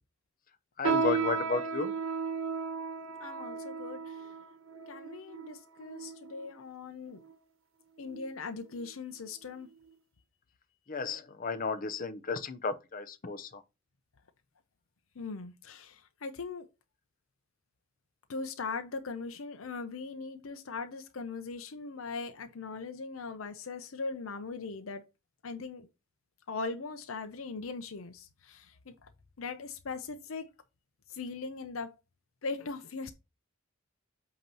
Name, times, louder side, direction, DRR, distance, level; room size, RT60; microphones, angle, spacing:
voice 1, 0.8-2.0 10.9-13.6, left 4 dB, 45° left, 0.8 m, -33 dB
sound 1, 0.8-6.5 7.2-7.3 8.0-8.3 8.7-8.9 9.6-9.7, right 5 dB, 90° right, 1.1 m, -34 dB
voice 2, 3.2-4.2 4.9-7.2 8.0-9.7 15.2-16.7 18.3-25.0 25.4-25.9 26.5-29.1 29.4-30.5 31.1-31.9 32.4-33.1, left 4 dB, 85° left, 0.7 m, -40 dB
8.3 x 3.0 x 5.4 m
head